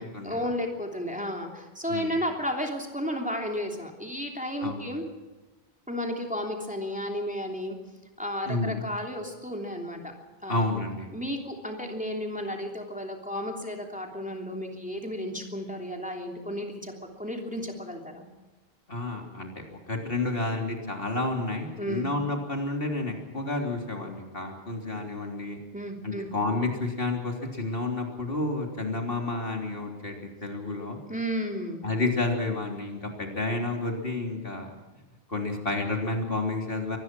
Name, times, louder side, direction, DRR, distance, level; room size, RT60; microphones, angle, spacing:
voice 1, 0.2-5.0 5.9-7.8 8.2-10.1 10.4-10.6 11.1-16.9 17.2-18.3 21.8-22.1 25.7-26.3 31.1-31.8, equal, 5° right, 1 dB, 3.1 m, -33 dB
voice 2, 8.5-8.8 10.5-11.1 18.9-25.6 26.0-30.2 30.4-31.0 31.8-34.7 35.3-37.0, left 2 dB, 65° left, 2 dB, 3.7 m, -30 dB
24.0 x 19.5 x 6.2 m, 1.2 s
omnidirectional pair, 1.0 m